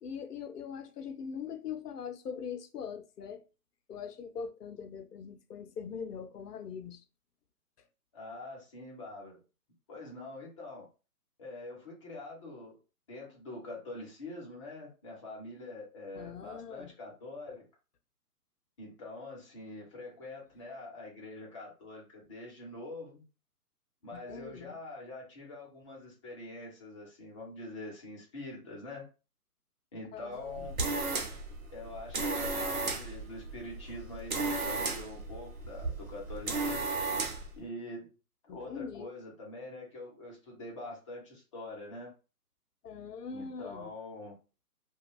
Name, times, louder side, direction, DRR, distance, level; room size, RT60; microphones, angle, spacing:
voice 1, 0.0-3.4 3.9-7.0 16.1-16.9 24.1-24.8 30.1-30.7 38.5-39.1 42.8-43.9, left 6 dB, 90° left, 0.6 m, -42 dB
voice 2, 8.1-9.4 9.9-10.9 11.4-12.8 13.1-17.7 18.8-23.3 24.0-29.1 29.9-30.8 31.7-37.0 37.5-38.1 38.5-42.1 43.3-44.4, left 2 dB, 20° left, 0.6 m, -45 dB
sound 1, 30.4-37.6, right 3 dB, 65° right, 0.9 m, -34 dB
2.9 x 2.3 x 2.2 m
hypercardioid pair, 145°, 46 cm